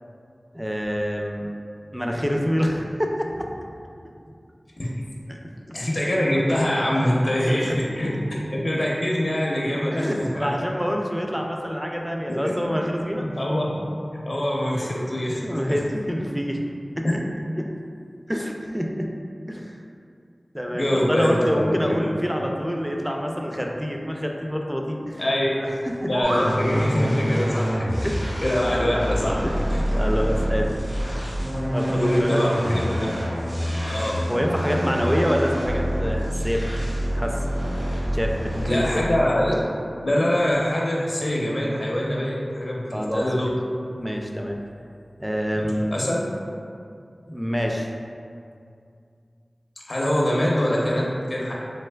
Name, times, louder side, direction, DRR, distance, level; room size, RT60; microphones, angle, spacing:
voice 1, 0.5-1.5 1.9-3.5 5.3-5.4 6.9-7.1 7.7-7.8 9.9-13.3 15.4-16.6 17.0-17.2 17.6-17.7 18.3-19.1 19.5-19.8 20.5-25.2 25.5-26.1 28.0-28.2 29.4-29.6 29.9-30.7 31.6-32.4 33.6-36.6 37.1-37.4 38.1-39.0 42.9-43.5 44.0-44.6 45.2-45.9 47.3-47.9, equal, 5° right, 1 dB, 0.3 m, -27 dB
voice 2, 5.7-10.5 12.4-12.5 13.4-13.8 14.1-15.7 17.0-17.1 20.7-21.8 25.2-25.5 26.0-28.1 28.4-29.5 29.7-29.8 31.9-33.1 33.9-34.2 38.7-39.6 40.0-43.5 45.9-46.2 49.9-51.5, left 1 dB, 65° left, -4 dB, 0.5 m, -24 dB
sound 1, 25.8-26.5, right 1 dB, 85° right, 0.4 m, -28 dB
sound 2, 26.2-39.2, equal, 65° right, 1.3 m, -26 dB
3.3 x 3.0 x 2.2 m, 2.4 s
wide cardioid pair, 40°, 0 cm